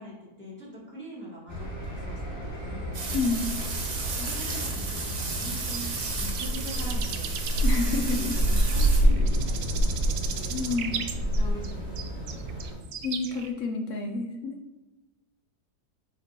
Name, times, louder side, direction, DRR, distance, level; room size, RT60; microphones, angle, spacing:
voice 1, 0.0-2.8 4.1-5.9 6.2-7.3 7.8-11.0 11.3-11.9 12.3-12.4, equal, 5° left, -8 dB, 1.7 m, -42 dB
sound 1, 1.5-12.7, right 1 dB, 20° right, 2.4 m, -28 dB
sound 2, 2.9-9.0, right 4 dB, 50° right, 1.3 m, -34 dB
voice 2, 3.1-3.5 7.6-8.4 10.5-10.9 13.0-14.6, left 4 dB, 65° left, 3 dB, 0.8 m, -29 dB
sound 3, 5.7-13.5, right 8 dB, 80° right, 1.2 m, -38 dB
7.3 x 5.2 x 2.9 m, 1.1 s
omnidirectional pair, 1.7 m